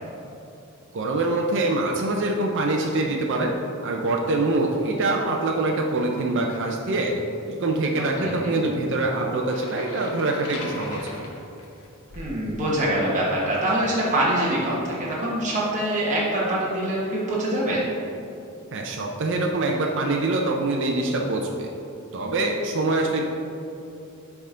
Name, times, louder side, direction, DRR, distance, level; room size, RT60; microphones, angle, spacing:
voice 1, 0.9-3.5 3.8-7.2 7.5-11.2 18.7-21.7 22.1-23.3, right 2 dB, 55° right, 0 dB, 0.5 m, -24 dB
voice 2, 8.0-8.5 12.2-17.9, right 1 dB, 35° right, -7 dB, 1.1 m, -24 dB
sound 1, 9.4-12.4, left 2 dB, 85° left, 0.9 m, -39 dB
9.8 x 3.5 x 3.7 m, 2.8 s
head